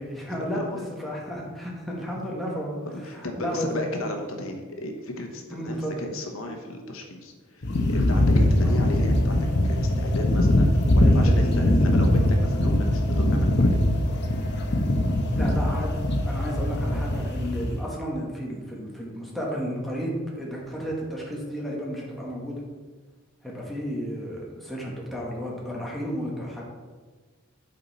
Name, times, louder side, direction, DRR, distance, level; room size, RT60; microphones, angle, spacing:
voice 1, 0.0-4.0 5.5-5.9 8.6-8.8 11.0-12.0 15.3-22.6 23.4-26.6, equal, ahead, -4 dB, 1.5 m, -32 dB
voice 2, 0.5-0.9 2.8-13.9, left 1 dB, 75° left, 3 dB, 1.1 m, -35 dB
sound 1, 7.6-17.8, left 1 dB, 55° left, 0.9 m, -22 dB
8.7 x 5.5 x 4.2 m, 1.4 s
head